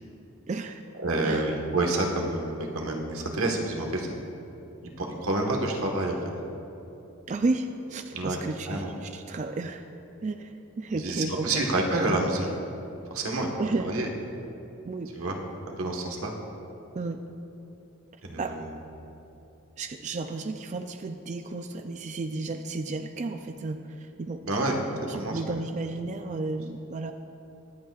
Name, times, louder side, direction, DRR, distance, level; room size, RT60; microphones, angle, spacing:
voice 1, 0.5-0.8 1.2-1.4 7.3-9.9 10.2-11.6 13.6-13.9 14.8-15.1 16.9-17.2 18.4-18.6 19.8-24.4 25.1-27.1, right 3 dB, 35° right, 7 dB, 0.3 m, -32 dB
voice 2, 1.0-4.1 5.0-6.2 8.1-8.4 8.7-8.9 11.0-12.5 13.1-13.5 13.8-14.1 15.1-15.4 15.8-16.3 18.2-18.5 24.4-24.7 25.1-25.6, right 2 dB, 90° right, 1 dB, 1.4 m, -28 dB
23.0 x 8.4 x 2.4 m, 2.9 s
head